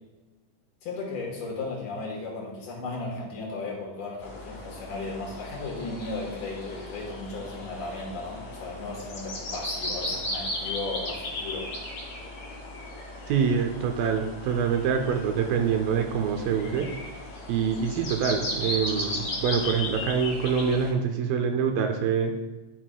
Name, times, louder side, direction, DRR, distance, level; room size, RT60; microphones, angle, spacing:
voice 1, 0.8-11.7, left 3 dB, 65° left, -2 dB, 2.4 m, -35 dB
sound 1, 4.2-20.9, left 1 dB, 45° left, 2.6 m, -36 dB
voice 2, 13.3-16.9 17.5-22.4, right 6 dB, 80° right, 4 dB, 2.2 m, -25 dB
11.0 x 5.9 x 2.2 m, 1.1 s
omnidirectional pair, 4.3 m